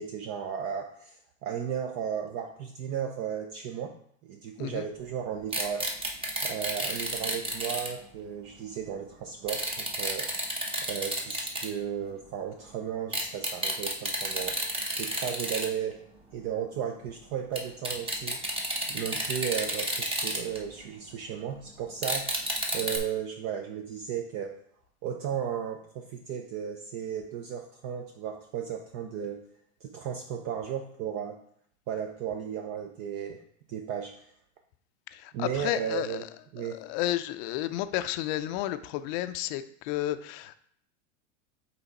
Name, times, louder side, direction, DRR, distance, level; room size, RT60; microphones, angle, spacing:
voice 1, 0.0-4.0 4.2-5.9 6.4-10.3 10.8-16.0 16.3-18.4 18.9-22.4 22.7-24.6 25.0-29.4 29.8-31.4 31.9-33.4 33.7-34.2 35.3-36.2 36.5-36.8, right 8 dB, 45° right, 4 dB, 0.6 m, -35 dB
sound 1, 5.5-7.9 9.5-11.7 13.1-15.7 15.9-16.0 17.5-17.6 17.8-20.9 22.0-23.0, right 1 dB, 15° right, 1.0 m, -31 dB
voice 2, 35.1-36.3 36.6-40.6, left 14 dB, 45° left, 11 dB, 0.5 m, -32 dB
5.6 x 4.1 x 4.1 m, 0.67 s
supercardioid pair, 120°, 39 cm